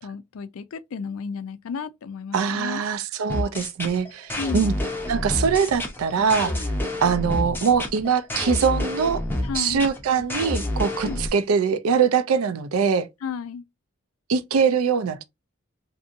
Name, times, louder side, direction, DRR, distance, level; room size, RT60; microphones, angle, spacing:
voice 1, 0.0-2.8 4.4-4.7 9.4-9.9 11.0-11.2 13.2-13.6, left 6 dB, 75° left, 0.4 m, -33 dB
voice 2, 2.3-4.7 5.1-6.6 7.0-9.2 9.5-13.1 14.3-15.2, right 6 dB, 85° right, 0.4 m, -22 dB
sound 1, 3.3-11.3, left 1 dB, 10° left, 0.5 m, -28 dB
2.7 x 2.5 x 2.5 m
head